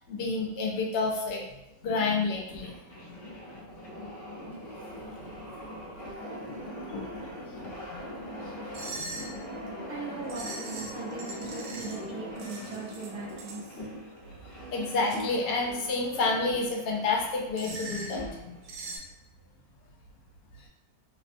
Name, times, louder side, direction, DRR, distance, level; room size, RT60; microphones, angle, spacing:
voice 1, 0.1-1.4 1.8-2.7 6.9-7.1 7.4-8.0 8.9-9.1 14.7-18.5, left 3 dB, 85° left, 0 dB, 1.2 m, -29 dB
sound 1, 2.3-18.7, equal, 55° left, 0.7 m, -42 dB
sound 2, 5.3-14.7 15.1-17.0, left 1 dB, 15° right, 0.8 m, -48 dB
sound 3, 8.7-9.4 10.3-12.0 12.4-13.6 17.6-18.2 18.6-19.0, right 3 dB, 80° right, 0.6 m, -41 dB
voice 2, 9.9-13.8, right 3 dB, 65° right, -4 dB, 1.0 m, -40 dB
3.4 x 2.0 x 2.5 m, 0.92 s
omnidirectional pair, 1.8 m